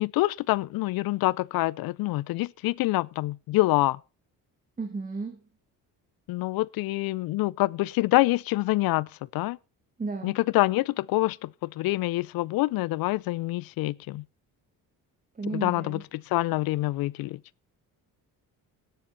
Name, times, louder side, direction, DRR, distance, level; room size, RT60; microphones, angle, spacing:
voice 1, 0.0-4.0 6.3-9.6 10.2-14.2 15.5-17.4, left 19 dB, 75° left, 0.5 m, -26 dB
voice 2, 4.8-5.4 10.0-10.3 15.3-16.0, right 3 dB, 25° right, 1.7 m, -33 dB
18.5 x 7.2 x 4.1 m
cardioid pair, 125°, 36 cm